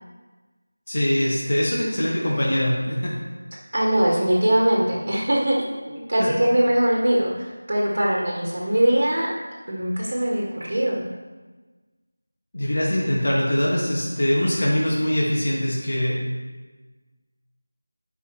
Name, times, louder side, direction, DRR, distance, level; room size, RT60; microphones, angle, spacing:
voice 1, 0.9-3.1 6.2-6.3 12.5-16.2, equal, 55° left, -5 dB, 2.0 m, -22 dB
voice 2, 3.7-9.3 9.7-11.0, right 1 dB, 60° right, -3 dB, 1.8 m, -21 dB
10.5 x 5.5 x 3.3 m, 1.3 s
figure-of-eight pair, 175°, 0 cm